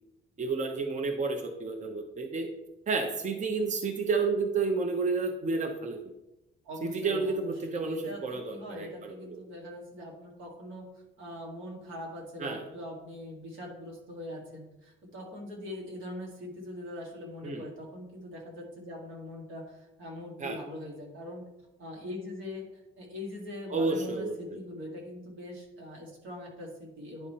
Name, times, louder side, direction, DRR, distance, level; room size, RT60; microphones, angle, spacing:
voice 1, 0.4-2.5 2.9-6.0 6.8-9.1 12.4-12.6 17.4-17.7 20.4-20.6 23.7-24.3, right 4 dB, 35° right, 4 dB, 0.8 m, -30 dB
voice 2, 6.6-10.8 11.2-21.4 21.8-22.7 23.0-27.3, left 1 dB, 85° right, -1 dB, 2.1 m, -42 dB
10.0 x 3.6 x 4.2 m, 0.97 s
cardioid pair, 90°, 20 cm